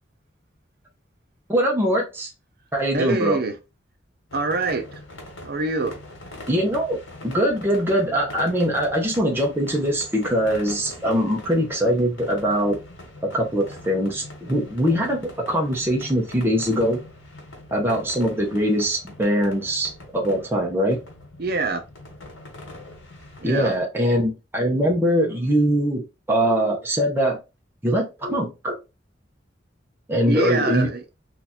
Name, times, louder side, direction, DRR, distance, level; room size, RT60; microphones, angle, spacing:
voice 1, 1.5-2.3 2.7-3.4 6.5-12.8 13.2-17.0 17.7-21.0 23.4-27.4 27.8-28.8 30.1-30.9, equal, 10° right, 0.7 m, -22 dB
voice 2, 2.9-3.5 4.3-5.0 5.4-5.9 21.4-21.8 23.4-23.7 30.3-31.0, right 3 dB, 55° right, 0.6 m, -25 dB
sound 1, 4.3-23.8, left 1 dB, 85° left, 1.3 m, -42 dB
2.9 x 2.4 x 4.1 m
head